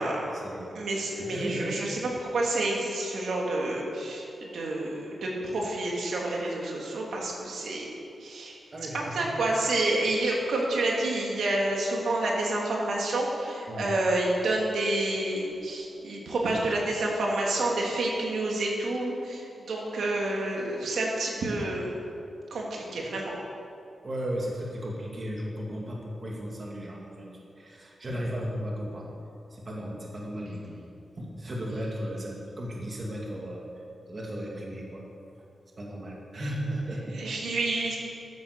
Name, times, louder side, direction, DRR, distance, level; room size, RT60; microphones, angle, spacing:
voice 1, 0.2-0.7 1.3-1.8 8.7-9.3 13.7-13.9 24.0-29.1 29.5-30.8 31.2-33.6 34.1-35.0 35.8-37.2, equal, 35° right, -2 dB, 2.1 m, -35 dB
voice 2, 0.7-7.9 8.2-8.6 8.9-21.9 22.5-23.3 36.3-36.5 37.1-38.0, right 2 dB, 85° right, -2 dB, 2.8 m, -29 dB
13.5 x 10.5 x 6.7 m, 2.7 s
wide cardioid pair, 150°, 0 cm